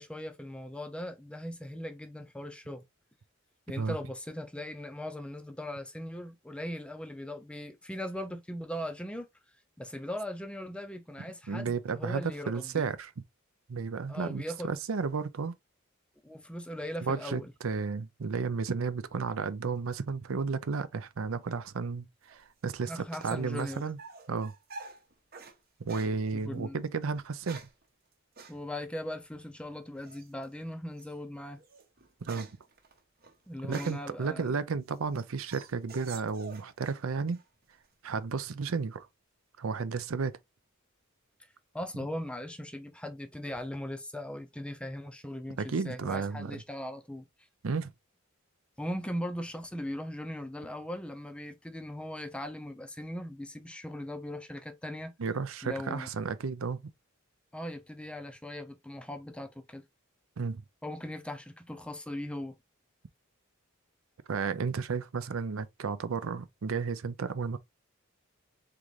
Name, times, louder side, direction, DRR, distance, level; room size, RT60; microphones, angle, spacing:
voice 1, 0.0-2.8 3.7-9.3 9.8-12.8 14.1-14.7 16.2-17.5 22.9-23.8 26.3-26.8 28.5-31.6 33.5-34.6 41.7-47.3 48.8-55.1 55.6-56.1 57.5-59.8 60.8-62.5, left 1 dB, 5° left, 0.4 m, -39 dB
voice 2, 11.5-13.1 13.7-15.5 17.0-24.0 24.3-24.5 25.8-27.6 32.2-32.5 33.6-37.4 38.0-39.1 39.6-40.4 45.6-46.6 47.6-47.9 55.2-56.8 60.4-60.6 64.3-67.6, right 5 dB, 75° right, 0.5 m, -33 dB
sound 1, 22.3-25.6 25.9-26.2 27.1-27.8 28.4-28.6 30.0-30.4 31.0-31.1 31.6-34.2 34.7-37.0 37.3-37.9, right 4 dB, 45° right, 0.9 m, -48 dB
3.9 x 3.6 x 3.1 m
head